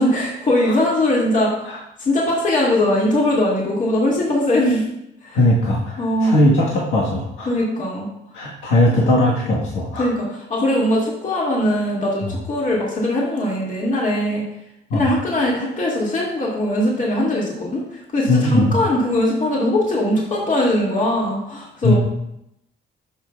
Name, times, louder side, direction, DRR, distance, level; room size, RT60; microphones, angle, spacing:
voice 1, 0.0-1.5 2.0-4.9 5.2-5.4 6.0-6.4 7.5-8.1 8.8-9.0 10.0-14.4 14.9-21.9, left 1 dB, 40° left, -4 dB, 2.2 m, -20 dB
voice 2, 5.3-7.5 8.3-10.1 12.2-12.3 14.9-15.0 18.3-18.7 21.8-21.9, left 1 dB, 90° left, -4 dB, 1.3 m, -18 dB
13.0 x 5.5 x 2.3 m, 0.82 s
cardioid pair, 90°, 20 cm